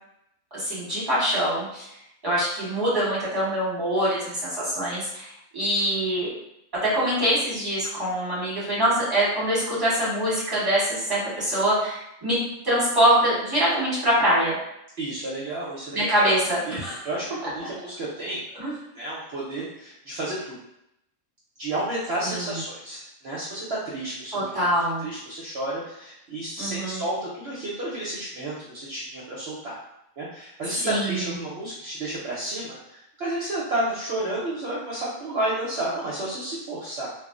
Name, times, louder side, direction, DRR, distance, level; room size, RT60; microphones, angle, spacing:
voice 1, 0.5-1.8 2.2-6.3 6.8-12.4 12.6-14.6 15.9-17.0 18.6-18.7 22.2-22.5 24.3-25.1 26.6-27.0 30.8-31.3, equal, 20° right, -8 dB, 1.0 m, -24 dB
voice 2, 15.0-16.1 16.7-18.4 18.9-20.6 21.6-24.5 25.0-29.8 30.2-37.1, right 1 dB, 60° right, -6 dB, 0.8 m, -31 dB
2.4 x 2.0 x 3.6 m, 0.81 s
omnidirectional pair, 1.4 m